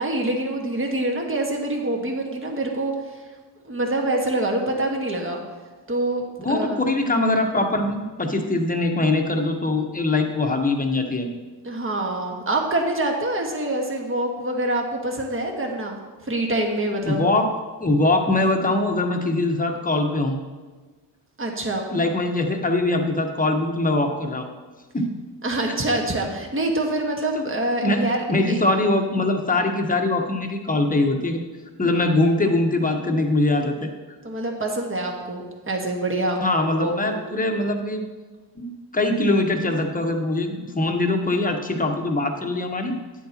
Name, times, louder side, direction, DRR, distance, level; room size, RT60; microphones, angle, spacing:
voice 1, 0.0-2.9 3.6-5.4 5.9-6.2 6.5-6.8 11.6-16.0 16.2-17.2 21.4-21.9 25.4-28.6 34.2-36.4 36.8-37.2, right 1 dB, 30° right, 1 dB, 1.6 m, -25 dB
voice 2, 6.4-11.3 17.0-17.4 17.8-20.4 21.9-24.5 24.9-25.1 25.7-25.8 27.3-27.4 27.8-31.4 31.8-33.9 36.4-38.1 38.6-43.0, left 2 dB, 20° left, 3 dB, 1.2 m, -22 dB
9.7 x 8.0 x 3.0 m, 1.3 s
cardioid pair, 70°, 43 cm